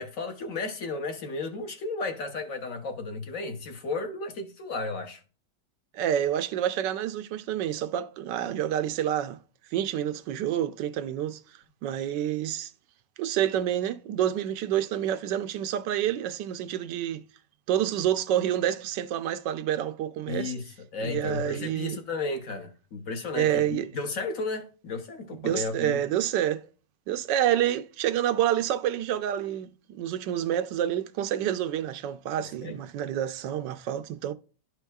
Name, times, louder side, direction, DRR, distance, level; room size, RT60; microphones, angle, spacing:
voice 1, 0.0-5.2 20.3-20.6 20.9-26.0 32.4-32.8, left 3 dB, 55° left, 1.2 m, -34 dB
voice 2, 5.9-9.4 9.7-11.4 11.8-12.7 13.2-17.2 17.7-20.5 21.0-22.0 23.4-23.9 25.4-26.6 27.1-34.3, right 11 dB, 85° right, 1.3 m, -28 dB
12.0 x 4.5 x 2.3 m
omnidirectional pair, 1.9 m